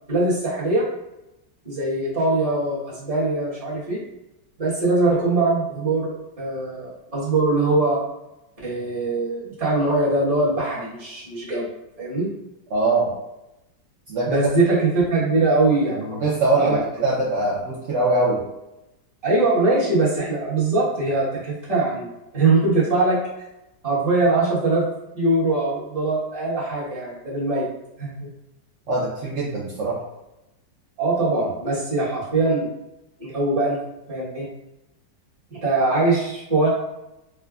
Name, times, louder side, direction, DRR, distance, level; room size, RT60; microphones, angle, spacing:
voice 1, 0.1-0.9 1.6-4.0 4.6-8.0 8.6-11.7 12.0-12.3 14.3-16.2 16.6-17.0 19.2-23.2 23.8-24.9 25.1-27.7 28.0-28.3 31.0-32.7 33.2-33.8 34.1-34.5 35.5-36.7, right 2 dB, 25° right, -7 dB, 1.0 m, -22 dB
voice 2, 12.7-13.1 14.1-14.5 16.2-16.8 17.0-18.4 28.9-30.0, right 2 dB, 65° right, -6 dB, 0.7 m, -22 dB
4.7 x 2.1 x 2.3 m, 0.92 s
omnidirectional pair, 1.9 m